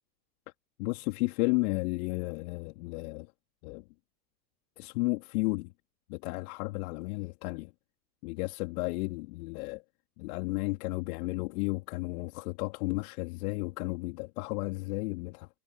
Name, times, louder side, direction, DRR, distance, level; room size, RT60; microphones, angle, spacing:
voice 1, 0.8-3.3 3.6-3.8 4.8-5.7 6.1-7.7 8.2-9.8 10.2-15.5, left 25 dB, 55° left, 3.4 m, -33 dB
hypercardioid pair, 95°, 50 cm